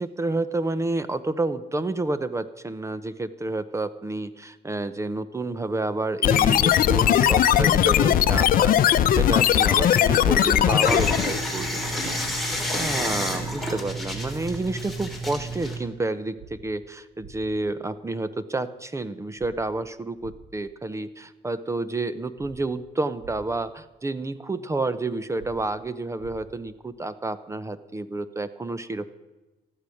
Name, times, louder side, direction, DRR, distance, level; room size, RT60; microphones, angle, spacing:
voice 1, 0.0-11.8 12.7-29.1, right 2 dB, 15° right, 14 dB, 0.8 m, -29 dB
sound 1, 6.2-11.4, left 10 dB, 55° left, 0.8 m, -19 dB
sound 2, 10.8-15.8, equal, ahead, 3.3 m, -29 dB
sound 3, 11.2-11.3 13.4-13.5 14.2-14.3 16.4-16.5 17.2-17.3 19.4-19.5 20.2-20.3 22.4-22.5 23.2-23.3 25.4-25.5 26.2-26.3, right 5 dB, 65° right, 6.3 m, -46 dB
14.5 x 12.0 x 6.4 m, 1.1 s
cardioid pair, 110°, 17 cm